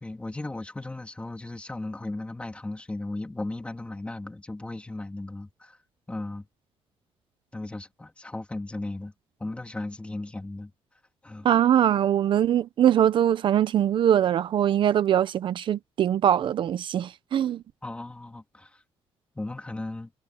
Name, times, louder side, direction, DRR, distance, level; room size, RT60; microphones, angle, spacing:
voice 1, 0.0-5.8 6.1-6.4 7.5-9.1 9.4-10.7 11.2-11.5 17.8-18.7 19.3-20.1, left 2 dB, 10° left, 3.0 m, -36 dB
voice 2, 11.4-17.6, right 10 dB, 55° right, 0.7 m, -22 dB
cardioid pair, 140°, 10 cm